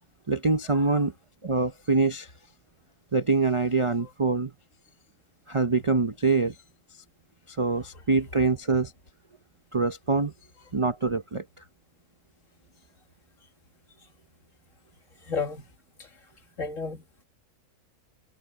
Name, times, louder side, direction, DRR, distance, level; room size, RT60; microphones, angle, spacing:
voice 1, 0.3-1.1 1.4-2.3 3.1-4.5 5.5-6.6 7.5-8.9 9.7-10.3 10.7-11.4, right 4 dB, 35° right, 0.5 m, -24 dB
voice 2, 15.3-15.6 16.0-16.1 16.6-17.2, left 5 dB, 55° left, 2.6 m, -32 dB
omnidirectional pair, 1.6 m